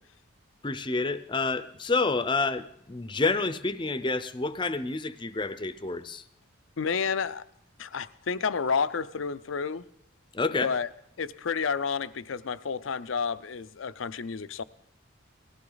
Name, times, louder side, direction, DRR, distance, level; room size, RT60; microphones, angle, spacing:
voice 1, 0.6-6.2 10.3-10.7, left 3 dB, 25° left, 0.6 m, -29 dB
voice 2, 6.8-7.4 7.8-9.8 10.6-10.9 11.2-14.6, left 5 dB, 80° left, 0.6 m, -30 dB
19.0 x 15.0 x 4.0 m
head